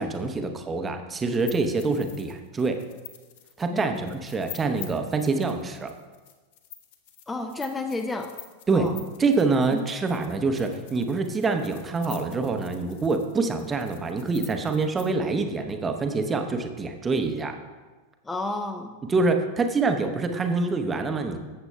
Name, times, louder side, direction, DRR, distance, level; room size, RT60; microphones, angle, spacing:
voice 1, 0.0-2.8 3.6-5.9 8.7-8.9 9.2-17.6 19.0-21.4, right 3 dB, 15° right, 6 dB, 0.8 m, -26 dB
sound 1, 1.3-15.0, left 11 dB, 50° left, 1.0 m, -46 dB
voice 2, 3.7-4.1 7.3-8.3 8.7-9.0 9.7-9.8 18.2-19.0, left 2 dB, 10° left, 6 dB, 0.5 m, -31 dB
14.0 x 7.9 x 2.3 m, 1.3 s
figure-of-eight pair, 90°, 0 cm